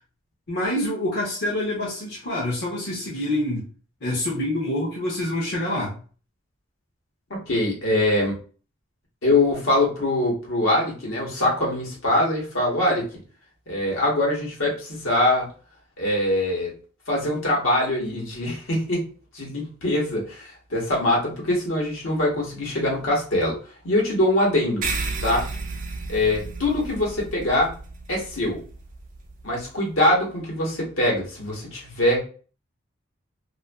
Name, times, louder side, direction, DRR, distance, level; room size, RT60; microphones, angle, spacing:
voice 1, 0.5-3.6 4.0-6.0, left 1 dB, 55° left, -5 dB, 0.7 m, -26 dB
voice 2, 7.4-8.4 9.2-13.1 13.7-15.5 16.0-16.7 17.1-19.0 19.3-23.6 23.8-24.9 25.2-25.5 26.1-27.7 28.1-28.6 29.4-32.2, left 1 dB, 75° left, -2 dB, 1.1 m, -23 dB
sound 1, 24.8-29.7, right 3 dB, 40° right, 0.3 m, -33 dB
2.5 x 2.4 x 2.3 m, 0.38 s
head